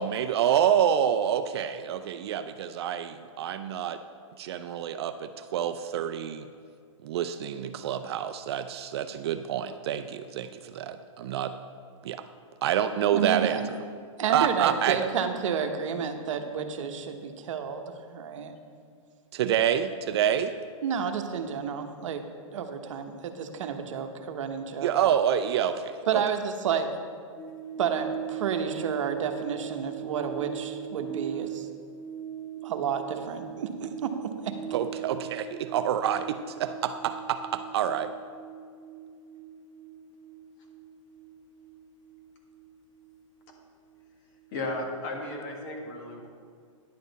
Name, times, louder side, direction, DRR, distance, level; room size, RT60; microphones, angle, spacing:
voice 1, 0.0-4.0 4.4-6.5 7.0-11.5 12.0-12.3 12.6-13.6 14.3-15.0 19.3-20.5 24.8-26.2 34.7-38.1, right 9 dB, 50° right, 9 dB, 0.4 m, -27 dB
voice 2, 13.1-13.6 14.2-17.8 18.1-18.5 20.8-22.2 22.5-24.9 26.1-26.9 27.8-31.7 32.6-34.5, right 7 dB, 65° right, 6 dB, 1.0 m, -30 dB
sound 1, 27.4-43.9 44.2-44.3, right 10 dB, 25° left, 0.8 m, -40 dB
voice 3, 44.5-46.3, left 2 dB, 40° left, 1 dB, 1.7 m, -34 dB
10.5 x 8.6 x 4.0 m, 2.1 s
hypercardioid pair, 155°, 17 cm